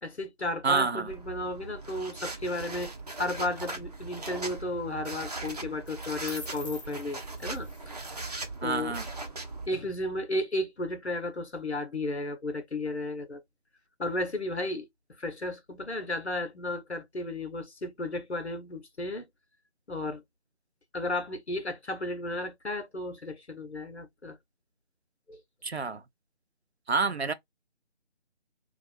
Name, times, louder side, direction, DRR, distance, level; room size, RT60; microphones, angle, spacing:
voice 1, 0.0-8.0 8.3-9.0 9.7-13.4 14.0-14.9 15.2-19.3 19.9-20.2 20.9-24.4 25.3-25.4, left 1 dB, 70° left, 1.4 m, -34 dB
voice 2, 0.6-1.1 8.6-9.1 25.6-26.0 26.9-27.3, right 4 dB, 65° right, 0.8 m, -28 dB
sound 1, 1.1-9.7, right 2 dB, 35° right, 0.9 m, -39 dB
sound 2, 2.4-2.9 5.2-5.5 5.9-7.9, left 1 dB, 25° left, 0.9 m, -47 dB
3.0 x 2.6 x 4.2 m
figure-of-eight pair, 160°, 35 cm